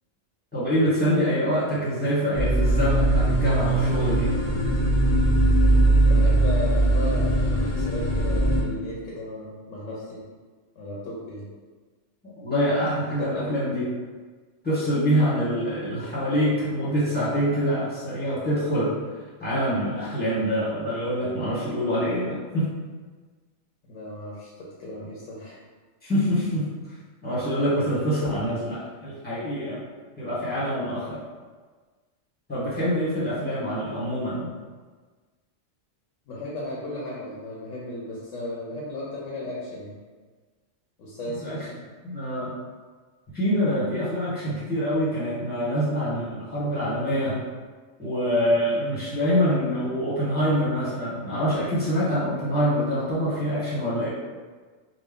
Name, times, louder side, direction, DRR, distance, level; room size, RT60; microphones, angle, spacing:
voice 1, 0.5-4.3 4.6-4.7 12.2-13.9 14.6-18.9 19.4-22.7 26.0-26.7 27.2-29.8 30.2-31.2 32.5-34.5 41.4-41.6 42.0-42.5 43.3-47.4 48.0-54.1, equal, 10° left, -9 dB, 1.2 m, -25 dB
sound 1, 2.3-8.6, right 1 dB, 50° left, 0.4 m, -20 dB
voice 2, 6.0-10.2 10.8-11.5 13.1-13.7 23.9-24.5 24.8-25.6 36.3-40.0 41.0-41.8, left 1 dB, 80° left, -5 dB, 1.1 m, -35 dB
3.6 x 2.3 x 3.6 m, 1.4 s
omnidirectional pair, 1.3 m